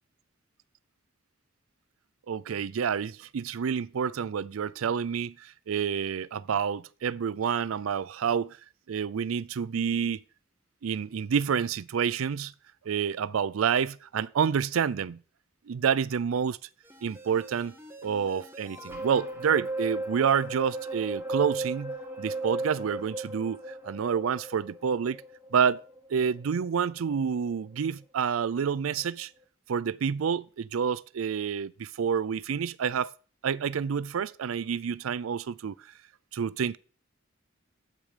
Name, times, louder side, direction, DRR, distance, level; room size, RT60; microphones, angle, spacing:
voice 1, 2.3-8.6 8.9-10.2 10.8-12.5 12.9-15.2 15.7-16.6 17.0-17.7 18.0-25.2 25.5-25.8 26.1-29.3 29.7-33.1 33.4-35.9 36.3-36.8, right 7 dB, 85° right, 0.4 m, -28 dB
sound 1, 16.8-27.2 27.6-27.7, right 2 dB, 10° right, 2.1 m, -37 dB
12.5 x 8.6 x 5.0 m
head